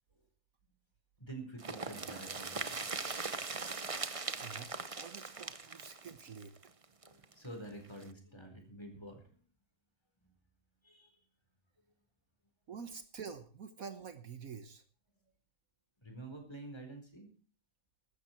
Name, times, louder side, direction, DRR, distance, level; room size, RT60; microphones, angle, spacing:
voice 1, 1.2-2.9 7.0-9.4 10.2-10.3 10.8-11.2 16.0-17.3, right 2 dB, 15° left, 4 dB, 4.4 m, -48 dB
sound 1, 1.6-7.3 7.6-7.7 8.0-8.1, right 4 dB, 25° right, 0.8 m, -40 dB
voice 2, 4.4-6.5 12.7-14.8, right 6 dB, 65° right, 10 dB, 1.6 m, -47 dB
15.0 x 13.0 x 4.5 m, 0.38 s
omnidirectional pair, 1.6 m